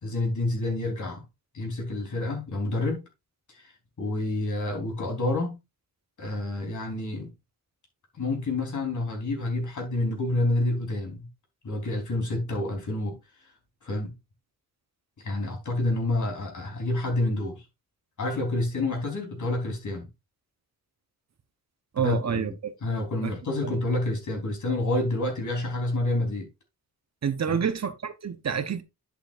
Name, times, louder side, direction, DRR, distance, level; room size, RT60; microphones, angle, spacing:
voice 1, 0.0-1.2 1.5-3.0 3.5-3.7 4.0-5.6 6.2-7.3 8.1-11.3 11.6-13.2 13.8-14.1 15.2-17.6 18.2-20.1 22.0-22.5 22.8-26.5 27.5-27.6, left 2 dB, 55° left, 3.8 m, -28 dB
voice 2, 21.9-22.7 23.2-23.3 23.6-23.7 27.2-28.8, right 7 dB, 45° right, 1.0 m, -28 dB
10.5 x 6.6 x 2.5 m
wide cardioid pair, 150°, 36 cm